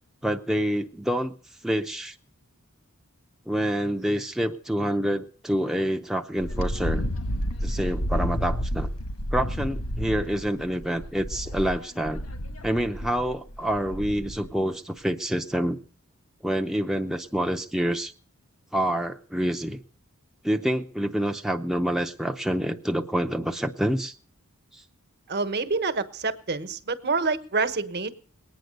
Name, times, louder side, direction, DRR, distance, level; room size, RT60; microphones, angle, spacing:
voice 1, 0.2-1.3 1.6-2.2 3.5-7.0 7.6-8.9 9.3-12.2 12.6-15.8 16.4-18.1 18.7-19.8 20.4-24.1 24.7-24.8, equal, ahead, 4 dB, 0.6 m, -27 dB
Wind, 6.4-14.5, equal, 75° left, 1.7 m, -31 dB
voice 2, 25.3-28.1, right 4 dB, 50° right, 12 dB, 1.2 m, -27 dB
20.5 x 9.3 x 6.5 m, 0.44 s
head